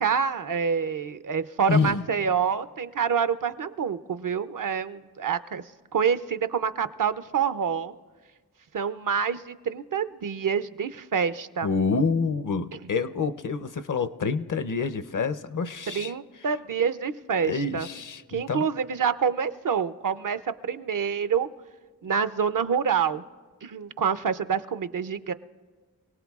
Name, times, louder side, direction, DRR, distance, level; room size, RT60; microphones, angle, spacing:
voice 1, 0.0-5.6 5.9-7.9 8.7-11.7 15.9-17.9 18.3-21.5 22.0-23.2 23.6-25.3, right 7 dB, 60° right, 12 dB, 0.6 m, -27 dB
voice 2, 1.7-2.0 11.6-16.1 17.4-18.7, left 4 dB, 55° left, 11 dB, 0.6 m, -27 dB
27.0 x 17.5 x 2.4 m, 1.4 s
cardioid pair, 50°, 37 cm